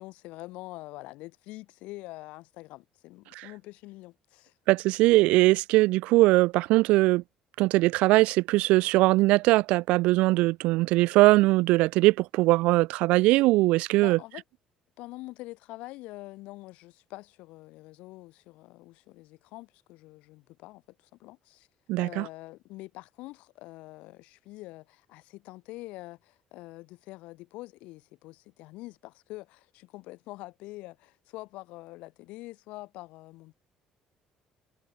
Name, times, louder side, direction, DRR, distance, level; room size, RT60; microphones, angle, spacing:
voice 1, 0.0-4.5 14.0-14.4 15.0-21.7 22.0-33.5, left 20 dB, 90° left, 6.5 m, -45 dB
voice 2, 4.7-7.2 7.6-14.2 21.9-22.3, right 20 dB, 90° right, 1.1 m, -21 dB
cardioid pair, 155°, 2 cm